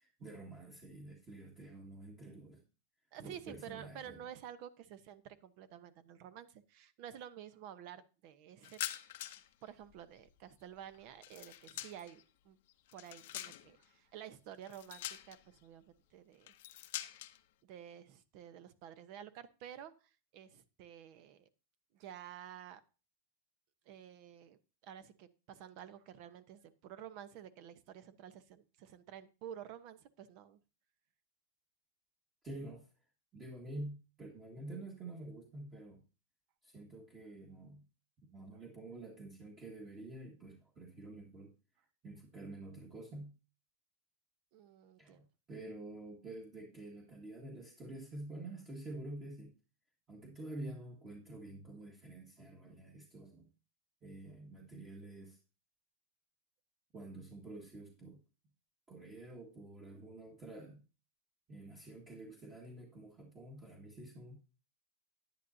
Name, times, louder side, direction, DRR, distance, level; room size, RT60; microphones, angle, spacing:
voice 1, 0.0-2.6 3.2-4.3 32.4-32.9 33.3-36.0 36.6-37.8 38.3-41.5 42.0-43.3 45.0-49.5 50.1-53.5 54.0-55.4 56.9-58.2 58.9-60.8 61.5-64.4, right 2 dB, 20° right, -2 dB, 1.8 m, -48 dB
voice 2, 3.1-8.8 9.6-12.6 12.9-16.5 17.6-21.5 21.9-22.8 23.8-30.6 44.5-45.2, right 10 dB, 45° right, 13 dB, 0.9 m, -51 dB
sound 1, 8.6-9.5 9.8-12.2 12.7-13.8 14.6-15.6 16.4-17.4, left 14 dB, 65° left, 0.7 m, -45 dB
10.5 x 9.8 x 2.7 m, 0.33 s
supercardioid pair, 145°, 0 cm